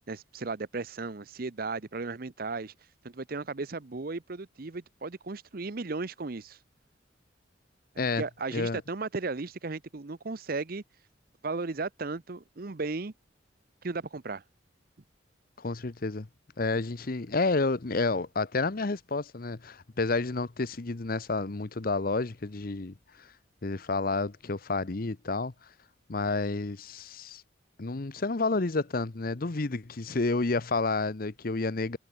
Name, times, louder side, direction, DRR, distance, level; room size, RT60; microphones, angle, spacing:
voice 1, 0.1-2.7 3.0-6.6 7.9-10.8 11.4-13.1 13.8-14.4, right 3 dB, 50° right, 0.8 m, -35 dB
voice 2, 8.5-8.8 15.6-16.3 16.6-23.3 23.6-25.5 26.1-27.4 27.8-32.0, left 3 dB, 50° left, 0.8 m, -30 dB
head